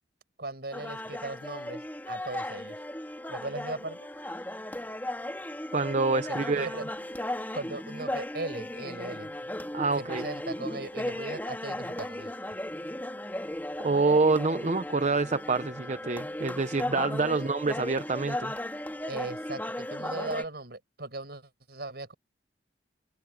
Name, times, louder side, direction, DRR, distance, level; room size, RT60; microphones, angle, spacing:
voice 1, 0.4-2.8 3.3-4.1 6.3-6.8 7.5-9.3 10.0-12.3 17.3-17.5 19.1-22.1, right 2 dB, 65° right, 6.9 m, -38 dB
sound 1, 0.7-20.5, left 1 dB, 10° left, 3.0 m, -36 dB
voice 2, 5.7-6.7 9.7-10.2 13.8-18.5, right 3 dB, 40° right, 0.7 m, -26 dB
head